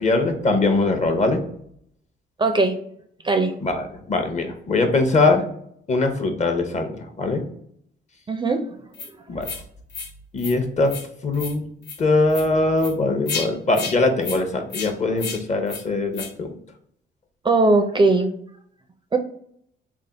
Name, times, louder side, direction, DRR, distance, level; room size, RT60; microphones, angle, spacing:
voice 1, 0.0-1.4 3.6-5.4 5.9-7.4 9.3-9.5 10.3-10.9 11.2-11.7 12.0-16.6, left 3 dB, 35° left, 5 dB, 0.7 m, -21 dB
voice 2, 2.4-2.8 3.2-3.5 8.3-8.6 17.4-18.3 19.1-19.2, right 3 dB, 25° right, 6 dB, 0.4 m, -18 dB
sound 1, 8.9-9.1 9.4-9.6 9.9-10.1 10.4-10.5 10.9-11.1 11.3-11.5 11.8-12.0 12.3-12.5 12.8-12.9 13.3-13.5 13.7-13.9 14.2-14.4 14.7-14.9 15.2-15.4 15.7-15.8 16.1-16.3, left 5 dB, 65° left, 0.9 m, -31 dB
3.4 x 2.1 x 3.9 m, 0.68 s
cardioid pair, 90°, 20 cm